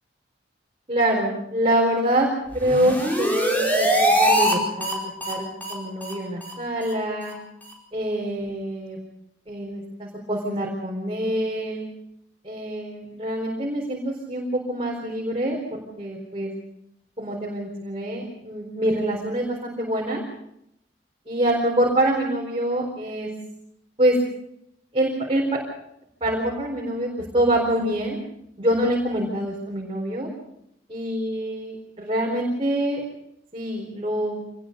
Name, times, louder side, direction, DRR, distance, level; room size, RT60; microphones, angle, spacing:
voice 1, 0.9-2.3 2.5-7.3 7.9-9.0 9.5-11.8 12.4-15.6 16.0-16.5 17.2-20.2 21.3-23.3 24.0-24.2 24.9-25.6 26.2-27.1 27.3-28.2 28.6-30.3 30.9-33.0 33.5-34.4, right 1 dB, 30° right, -2 dB, 4.3 m, -25 dB
sound 1, 2.5-4.5 4.8-4.9 5.2-5.3 5.6-5.7 6.0-6.1 6.4-6.5 6.8-6.9 7.2-7.3 7.6-7.7, equal, 10° left, 4.6 m, -22 dB
26.0 x 20.0 x 5.3 m, 0.77 s
head